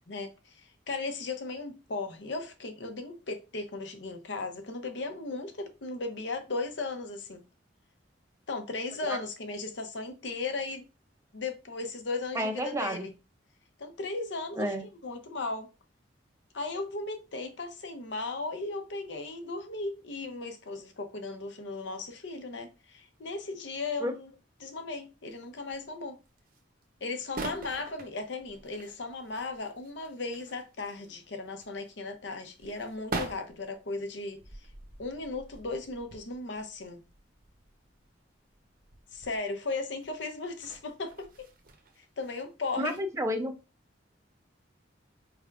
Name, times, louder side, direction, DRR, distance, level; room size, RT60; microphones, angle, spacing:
voice 1, 0.1-0.6 0.9-7.4 8.5-10.8 11.3-13.1 13.8-15.7 16.5-24.3 24.6-26.2 27.0-34.4 35.0-37.0 39.1-41.5 42.0-43.0, left 3 dB, 70° left, 0.7 m, -36 dB
voice 2, 12.3-13.1 14.6-14.8 24.0-24.1 42.8-43.5, equal, 15° right, 0.5 m, -30 dB
sound 1, 25.3-25.9 26.2-26.8 27.1-31.2 31.5-39.4 40.0-42.4 42.7-43.0 43.4-43.5, right 2 dB, 50° right, 0.8 m, -45 dB
4.6 x 3.4 x 2.4 m
head